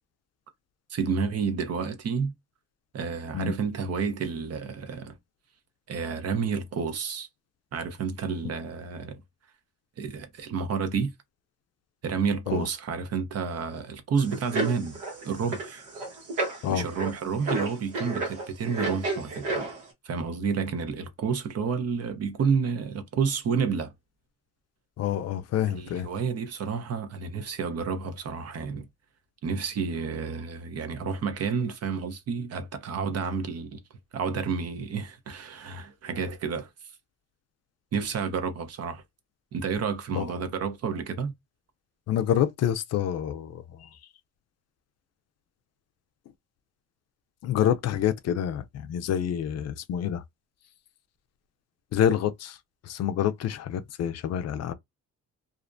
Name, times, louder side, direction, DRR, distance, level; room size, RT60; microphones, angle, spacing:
voice 1, 0.9-2.3 2.9-5.2 5.9-7.3 7.7-9.2 10.0-11.1 12.0-15.0 15.2-15.8 16.7-19.7 20.0-23.9 25.7-28.9 29.4-33.8 34.1-36.7 37.9-39.0 39.5-41.3, right 5 dB, 55° right, 0.7 m, -30 dB
sound 1, 14.2-19.8, right 2 dB, 85° right, 1.1 m, -32 dB
voice 2, 25.0-26.1 40.1-40.3 42.1-43.9 47.4-50.2 51.9-52.6 52.8-54.7, left 10 dB, 55° left, 0.4 m, -27 dB
2.5 x 2.0 x 2.5 m
cardioid pair, 90°, 30 cm